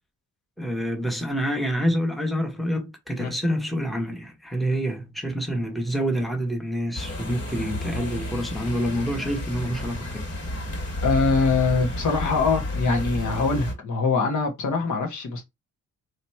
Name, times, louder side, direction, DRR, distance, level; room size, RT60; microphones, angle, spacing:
voice 1, 0.6-10.3, equal, ahead, 1.0 m, -27 dB
sound 1, 6.9-13.7, left 1 dB, 50° left, 2.0 m, -31 dB
voice 2, 11.0-15.4, left 4 dB, 70° left, 1.4 m, -23 dB
3.2 x 2.9 x 4.4 m
cardioid pair, 125°, 30 cm